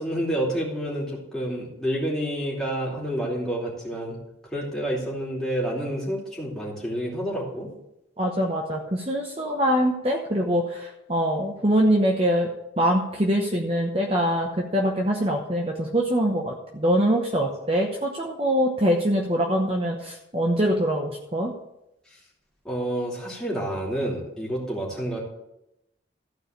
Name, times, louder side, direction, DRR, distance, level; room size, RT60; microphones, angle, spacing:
voice 1, 0.0-4.2 4.5-7.7 17.4-17.5 22.1-22.2 22.6-25.2, equal, 5° left, -6 dB, 2.9 m, -29 dB
voice 2, 8.2-12.5 12.8-21.5, equal, 30° right, 1 dB, 0.9 m, -23 dB
14.0 x 4.8 x 6.7 m, 0.85 s
head